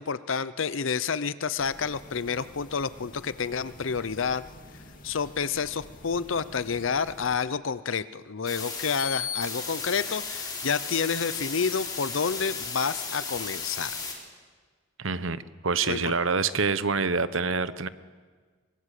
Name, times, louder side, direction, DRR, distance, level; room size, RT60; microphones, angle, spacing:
voice 1, 0.0-4.4 5.0-13.9 15.9-16.1, left 6 dB, 65° left, 15 dB, 0.7 m, -29 dB
sound 1, 1.6-7.4, left 1 dB, 40° left, 2.3 m, -49 dB
sound 2, 8.5-14.1, left 5 dB, 20° left, 4.2 m, -34 dB
voice 2, 15.0-17.9, right 4 dB, 70° right, 14 dB, 1.0 m, -26 dB
24.5 x 23.0 x 8.4 m, 1.5 s
head